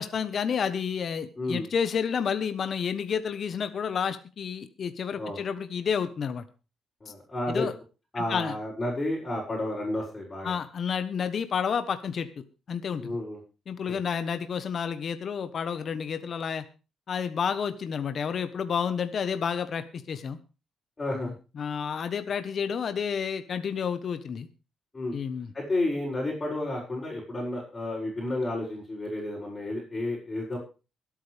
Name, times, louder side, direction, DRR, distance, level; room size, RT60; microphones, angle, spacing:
voice 1, 0.0-6.4 7.1-7.2 7.5-7.7 8.2-8.6 10.4-12.3 12.7-13.2 13.7-16.6 17.1-20.4 21.1-24.5 25.1-25.5, left 7 dB, 50° left, 10 dB, 1.2 m, -30 dB
voice 2, 1.4-1.7 5.2-5.4 7.0-7.7 8.1-10.6 13.0-13.4 13.9-14.0 21.0-21.3 24.9-25.1 25.5-30.6, left 1 dB, 20° left, -7 dB, 6.6 m, -31 dB
23.5 x 8.8 x 3.5 m, 0.32 s
cardioid pair, 110°, 0 cm